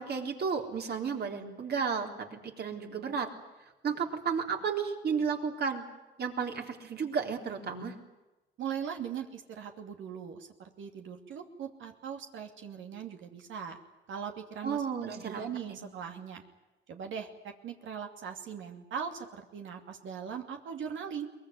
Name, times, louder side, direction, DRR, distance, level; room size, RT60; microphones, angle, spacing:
voice 1, 0.0-3.3 3.8-5.8 6.2-7.9 14.6-15.8, right 6 dB, 55° right, 4 dB, 3.9 m, -33 dB
voice 2, 8.6-13.8 14.1-16.4 16.9-21.3, right 7 dB, 75° right, 4 dB, 2.7 m, -40 dB
22.5 x 20.5 x 9.7 m, 1.1 s
cardioid pair, 90°, 20 cm